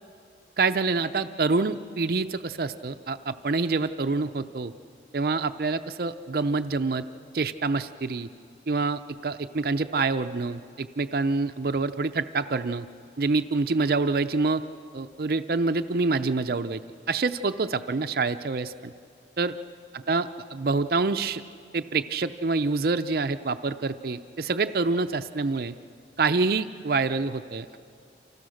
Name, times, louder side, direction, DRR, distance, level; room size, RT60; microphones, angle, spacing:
voice 1, 0.6-4.7 5.1-7.1 7.3-8.3 8.7-12.9 13.2-14.6 14.9-16.8 17.1-18.9 19.4-19.6 19.9-21.4 21.7-25.7 26.2-27.8, right 3 dB, 55° right, 9 dB, 0.5 m, -26 dB
29.5 x 26.5 x 6.4 m, 2.4 s
head